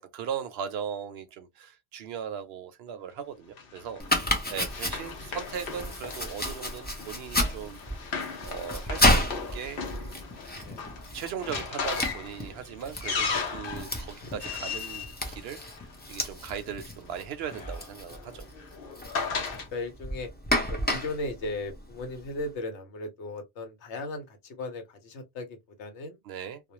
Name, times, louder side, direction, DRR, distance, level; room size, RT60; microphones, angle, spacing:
voice 1, 0.0-8.0 8.4-10.1 11.1-15.8 16.1-18.5 26.3-26.6, right 8 dB, 70° right, 0.8 m, -38 dB
Run, 3.6-16.2 17.2-19.7, left 5 dB, 55° left, 0.9 m, -37 dB
Domestic sounds home sounds, 4.0-22.5, left 1 dB, 15° left, 0.3 m, -32 dB
voice 2, 4.1-4.6 10.6-10.8 19.1-20.3 20.7-26.2, left 2 dB, 75° left, 1.1 m, -37 dB
2.4 x 2.1 x 2.8 m
omnidirectional pair, 1.2 m